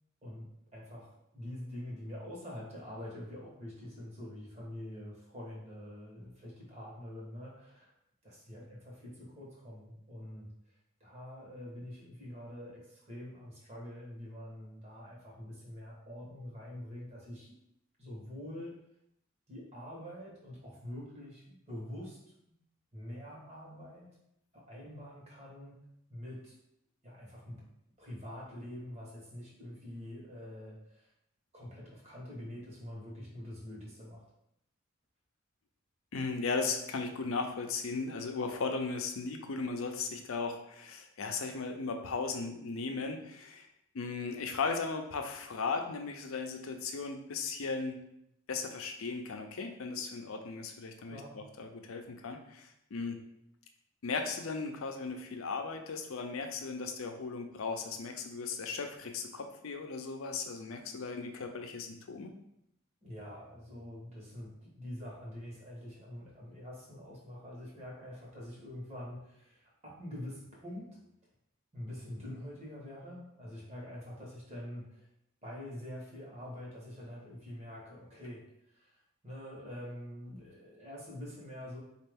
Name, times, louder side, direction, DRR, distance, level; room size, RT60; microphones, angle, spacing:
voice 1, 0.7-7.9 8.2-10.5 11.0-17.5 18.0-18.8 19.5-22.2 22.5-22.6 22.9-24.1 24.5-25.8 26.1-26.5 27.0-27.6 28.0-31.1 31.5-34.2 51.1-51.4 63.0-71.0 71.7-75.1 75.4-78.5 78.7-81.8, left 1 dB, 30° right, -4 dB, 1.1 m, -45 dB
voice 2, 36.1-43.7 43.9-48.0 48.5-53.2 54.0-62.3, left 4 dB, 80° left, 5 dB, 0.5 m, -37 dB
4.3 x 2.4 x 3.4 m, 0.78 s
head